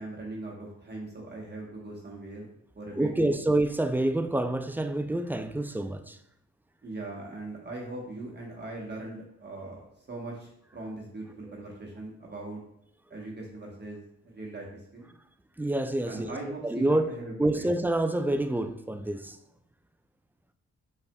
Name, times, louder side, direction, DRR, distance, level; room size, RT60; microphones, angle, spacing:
voice 1, 0.0-2.5 2.7-3.4 6.8-12.6 13.1-14.0 14.3-15.1 16.1-17.7, right 2 dB, 35° right, 1.1 m, -40 dB
voice 2, 3.0-6.2 15.6-16.4 16.6-19.4, right 1 dB, 5° right, 0.3 m, -27 dB
5.5 x 4.2 x 2.2 m
cardioid pair, 65°, 30 cm